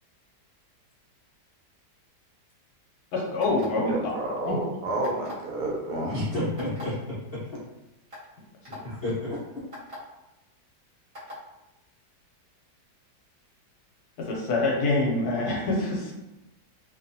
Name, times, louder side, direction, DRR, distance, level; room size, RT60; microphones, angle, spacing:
voice 1, 3.1-4.1 4.4-4.6 8.7-8.8 14.2-16.1, left 2 dB, 75° left, -1 dB, 1.1 m, -26 dB
sound 1, 3.4-3.9 5.0-5.5 6.6-6.8 7.6-7.7 8.1-8.2 8.6-8.8 9.7-10.0 11.1-11.4, left 2 dB, 25° right, 0.7 m, -41 dB
voice 2, 3.9-6.2, right 1 dB, 70° right, -2 dB, 1.1 m, -30 dB
voice 3, 6.1-7.4 8.8-9.6, left 1 dB, 60° left, -10 dB, 0.6 m, -31 dB
2.8 x 2.3 x 2.6 m, 0.96 s
omnidirectional pair, 1.8 m